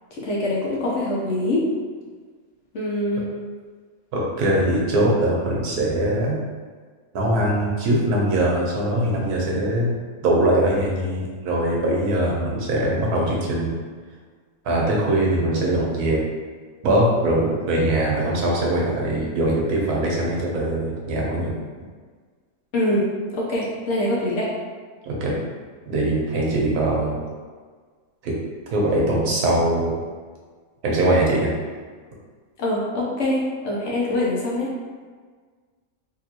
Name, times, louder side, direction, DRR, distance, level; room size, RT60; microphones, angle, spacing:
voice 1, 0.1-1.7 2.7-3.3 22.7-24.5 32.6-34.7, left 1 dB, 60° left, -4 dB, 0.9 m, -24 dB
voice 2, 4.1-6.4 7.1-9.9 10.2-13.7 14.6-16.2 16.8-21.5 25.0-25.3 25.9-27.2 28.2-28.3 28.7-29.9 30.8-31.5, right 1 dB, 85° right, -3 dB, 1.3 m, -21 dB
3.6 x 2.6 x 2.8 m, 1.5 s
omnidirectional pair, 1.6 m